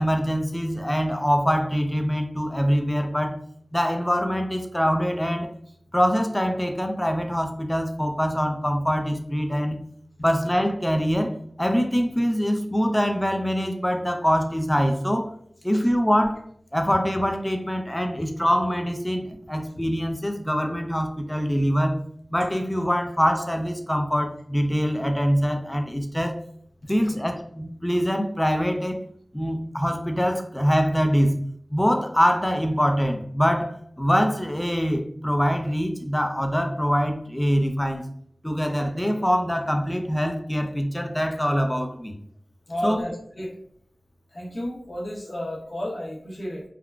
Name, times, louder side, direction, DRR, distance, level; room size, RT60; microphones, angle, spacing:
voice 1, 0.0-3.4 3.7-5.5 5.9-9.8 10.2-15.3 15.6-16.4 16.7-22.0 22.3-26.3 26.9-29.0 29.3-31.4 31.7-38.1 38.4-42.2 42.8-43.1, equal, 15° left, 4 dB, 0.5 m, -24 dB
voice 2, 42.7-43.5 44.3-46.6, equal, 60° left, -3 dB, 1.0 m, -32 dB
3.6 x 2.2 x 2.3 m, 0.64 s
wide cardioid pair, 50°, 0 cm